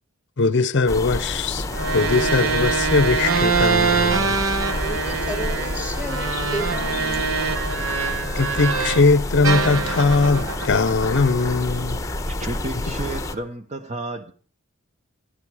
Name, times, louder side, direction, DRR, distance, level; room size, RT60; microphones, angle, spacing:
voice 1, 0.4-4.4 8.4-12.0, left 3 dB, 60° left, 0.7 m, -20 dB
sound 1, 0.9-13.4, left 2 dB, 15° left, 1.0 m, -29 dB
sound 2, 1.7-9.1 9.4-11.8, right 5 dB, 75° right, 1.1 m, -24 dB
voice 2, 4.8-7.4, equal, 5° right, 2.6 m, -33 dB
voice 3, 12.3-14.3, right 2 dB, 35° right, 1.0 m, -31 dB
18.5 x 13.0 x 4.8 m
head